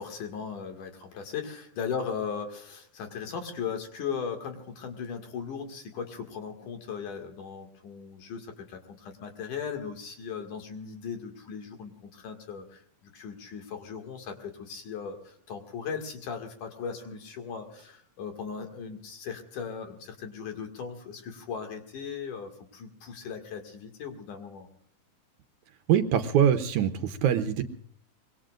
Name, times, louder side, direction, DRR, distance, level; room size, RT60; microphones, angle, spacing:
voice 1, 0.0-24.7, left 6 dB, 65° left, 4 dB, 3.5 m, -38 dB
voice 2, 25.9-27.6, right 9 dB, 70° right, 8 dB, 2.1 m, -23 dB
25.0 x 22.0 x 2.5 m, 0.64 s
omnidirectional pair, 3.9 m